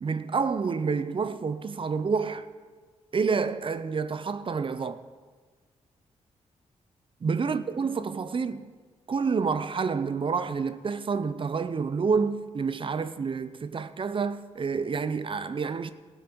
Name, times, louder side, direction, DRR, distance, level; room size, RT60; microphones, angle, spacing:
voice 1, 0.0-2.5 3.1-5.0 7.2-8.7 9.1-15.9, right 5 dB, 40° right, 0.6 m, -28 dB
15.0 x 9.1 x 4.6 m
cardioid pair, 60°, 13 cm